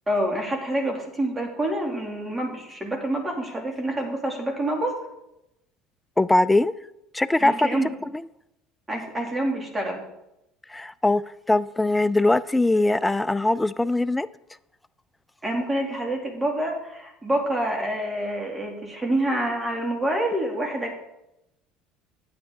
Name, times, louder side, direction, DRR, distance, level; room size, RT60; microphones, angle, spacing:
voice 1, 0.1-4.9 7.4-7.9 8.9-10.0 15.4-20.9, right 1 dB, 20° right, 2.4 m, -27 dB
voice 2, 6.2-6.7 7.1-7.7 10.7-11.2 11.5-14.3, left 2 dB, 10° left, 0.3 m, -21 dB
9.9 x 8.2 x 3.5 m
hypercardioid pair, 85°, 0 cm